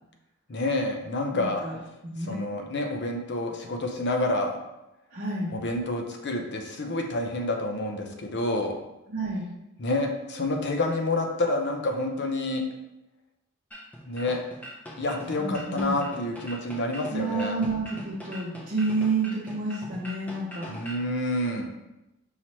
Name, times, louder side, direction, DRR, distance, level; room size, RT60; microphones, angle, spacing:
voice 1, 0.5-1.6 2.3-4.6 5.5-8.7 9.8-12.6 14.1-14.4 15.0-17.6 20.6-21.7, left 2 dB, 50° left, 3 dB, 0.6 m, -28 dB
voice 2, 1.3-1.7 2.0-2.5 5.1-5.5 9.1-9.5 15.4-16.0 17.1-20.9, right 3 dB, 40° right, -6 dB, 0.7 m, -29 dB
sound 1, 13.7-21.1, equal, 5° left, 0.6 m, -42 dB
5.6 x 3.0 x 3.0 m, 0.94 s
head